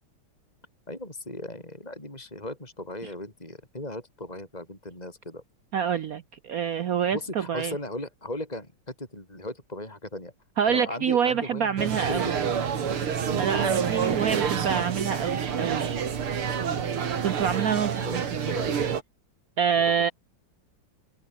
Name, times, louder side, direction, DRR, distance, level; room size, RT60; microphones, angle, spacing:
voice 1, 0.9-5.4 7.1-10.3 10.7-12.3 13.6-13.8 17.0-17.2 18.0-18.8 19.8-20.1, left 1 dB, 15° left, 6.6 m, -37 dB
voice 2, 5.7-7.7 10.6-12.4 13.4-15.9 17.2-18.5 19.6-20.1, right 7 dB, 65° right, 0.9 m, -27 dB
sound 1, 11.8-19.0, right 7 dB, 90° right, 3.0 m, -28 dB
omnidirectional pair, 2.3 m